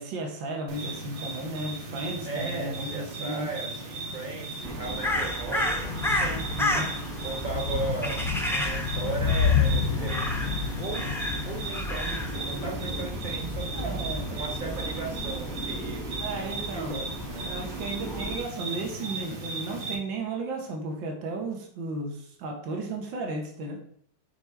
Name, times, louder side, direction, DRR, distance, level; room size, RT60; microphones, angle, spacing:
voice 1, 0.0-3.5 6.5-6.9 13.7-14.3 16.2-17.1 17.4-23.8, right 2 dB, 70° right, 2 dB, 2.1 m, -34 dB
sound 1, 0.7-19.9, right 2 dB, 90° right, 2.4 m, -37 dB
voice 2, 2.2-6.8 7.2-14.0 14.3-17.5, right 4 dB, 25° right, 0 dB, 1.4 m, -37 dB
Crow, 4.6-18.4, equal, 5° left, 0.4 m, -33 dB
sound 2, 5.8-13.0, left 6 dB, 75° left, 0.7 m, -30 dB
8.7 x 4.3 x 4.7 m, 0.62 s
omnidirectional pair, 2.2 m